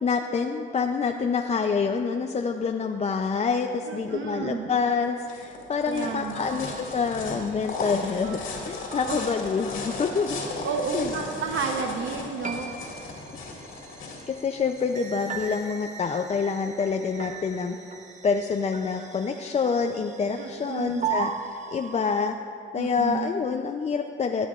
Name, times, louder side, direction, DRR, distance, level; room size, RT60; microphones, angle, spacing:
voice 1, 0.0-10.7 10.9-11.1 14.3-17.8 18.2-22.4 22.7-24.5, left 5 dB, 35° left, 4 dB, 0.5 m, -27 dB
voice 2, 3.8-4.7 5.9-6.5 9.1-9.2 10.6-12.7 20.4-21.1 22.8-23.3, right 5 dB, 75° right, 3 dB, 0.9 m, -31 dB
sound 1, 4.8-15.6, left 3 dB, 75° left, 2.1 m, -36 dB
sound 2, 6.3-22.1, right 6 dB, 40° right, 1.0 m, -39 dB
17.5 x 10.0 x 2.5 m, 2.3 s
cardioid pair, 90°, 20 cm